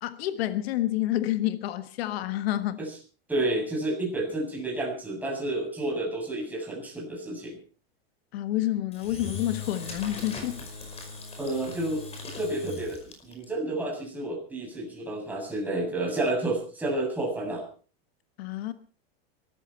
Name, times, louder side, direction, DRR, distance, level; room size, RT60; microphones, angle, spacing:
voice 1, 0.0-2.8 8.3-10.6 18.4-18.7, left 14 dB, 80° left, 1.5 m, -29 dB
voice 2, 3.3-7.6 11.4-12.1 12.3-17.6, right 2 dB, 5° right, 7.4 m, -30 dB
Engine / Drill, 8.9-13.5, left 3 dB, 20° left, 5.1 m, -40 dB
23.0 x 14.0 x 4.4 m
supercardioid pair, 155°, 31 cm